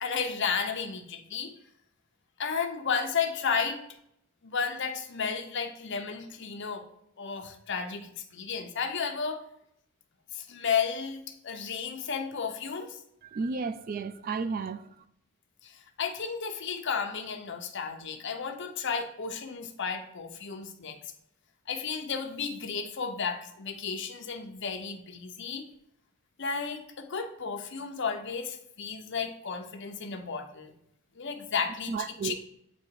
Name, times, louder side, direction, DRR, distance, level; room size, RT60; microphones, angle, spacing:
voice 1, 0.0-1.5 2.4-3.8 4.4-6.9 7.2-9.4 10.3-13.0 15.6-21.0 21.7-25.7 26.4-30.7 31.2-32.4, left 6 dB, 60° left, 0.8 m, -33 dB
voice 2, 13.3-14.9 31.9-32.4, right 4 dB, 45° right, 0.3 m, -32 dB
8.3 x 2.9 x 4.6 m
head